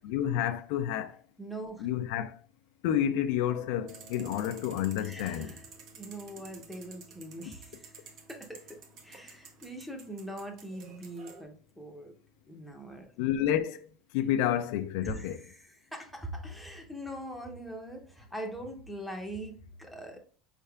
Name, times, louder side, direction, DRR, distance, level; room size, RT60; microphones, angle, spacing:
voice 1, 0.0-1.2 1.8-2.3 2.8-5.5 13.2-13.9 14.1-15.4, left 10 dB, 75° left, 0.3 m, -30 dB
voice 2, 1.4-1.9 5.0-5.6 5.9-12.1 12.5-13.1 15.0-20.2, right 1 dB, ahead, 0.7 m, -42 dB
sound 1, 3.4-13.5, right 1 dB, 80° right, 1.6 m, -59 dB
sound 2, 3.9-11.4, right 6 dB, 55° right, 0.8 m, -52 dB
5.3 x 3.4 x 2.3 m
cardioid pair, 150°, 0 cm